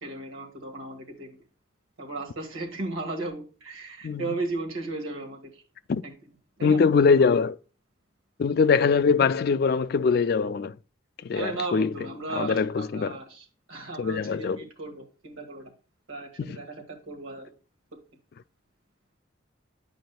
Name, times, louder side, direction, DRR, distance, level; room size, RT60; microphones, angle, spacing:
voice 1, 0.0-1.4 2.0-5.6 6.0-6.1 6.6-6.8 11.3-15.7 16.1-17.5, right 2 dB, 80° right, 1.7 m, -35 dB
voice 2, 6.6-7.6 8.4-10.7 11.2-11.9 12.4-13.2 14.0-14.6 16.4-16.6, left 5 dB, 50° left, 0.3 m, -22 dB
9.3 x 5.1 x 2.2 m
head